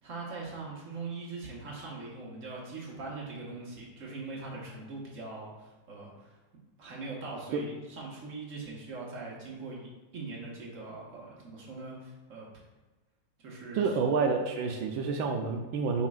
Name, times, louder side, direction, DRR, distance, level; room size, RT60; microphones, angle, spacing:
voice 1, 0.0-6.4 6.8-12.5 13.4-13.8, right 3 dB, 45° right, -3 dB, 1.8 m, -41 dB
voice 2, 13.7-16.1, right 5 dB, 85° right, 3 dB, 1.4 m, -28 dB
8.6 x 5.7 x 2.4 m, 1.2 s
omnidirectional pair, 2.1 m